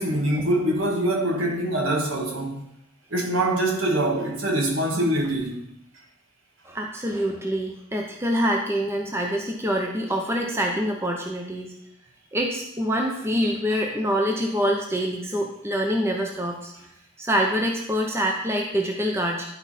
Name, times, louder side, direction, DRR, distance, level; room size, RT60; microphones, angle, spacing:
voice 1, 0.0-2.6 3.1-5.6, right 1 dB, 75° right, 1 dB, 1.7 m, -24 dB
voice 2, 6.6-11.7 12.3-16.7 17.2-19.5, equal, 10° right, 1 dB, 0.7 m, -25 dB
11.0 x 4.7 x 4.2 m, 0.81 s
head